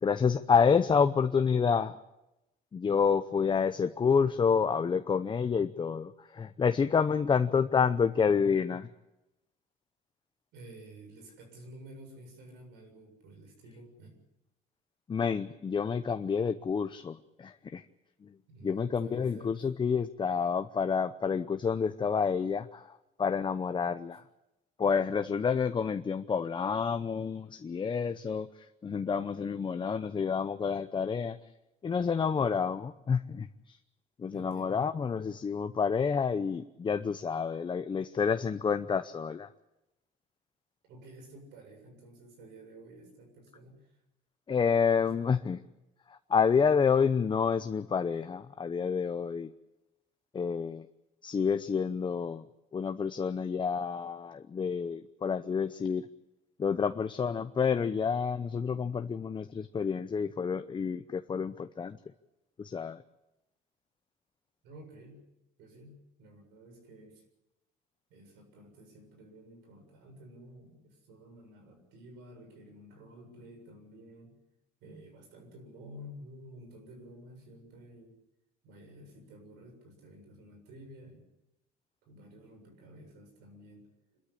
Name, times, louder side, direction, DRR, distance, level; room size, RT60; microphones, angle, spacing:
voice 1, 0.0-1.9 2.7-8.9 15.1-17.8 18.6-22.9 23.2-24.2 24.8-28.5 28.8-31.4 31.8-33.8 34.2-39.5 44.5-45.6 46.3-49.5 50.3-50.9 51.2-52.4 52.7-56.1 56.6-62.0 62.6-63.0, left 6 dB, 30° left, 9 dB, 0.8 m, -29 dB
voice 2, 10.5-14.2 18.5-19.6 34.3-34.8 40.9-44.0 44.8-45.2 64.6-65.2 65.6-67.2 68.1-74.3 74.8-78.2 78.6-81.3 82.0-83.9 84.1-84.2, right 1 dB, 90° right, 4 dB, 7.4 m, -51 dB
26.5 x 13.5 x 10.0 m, 0.94 s
cardioid pair, 110°, 17 cm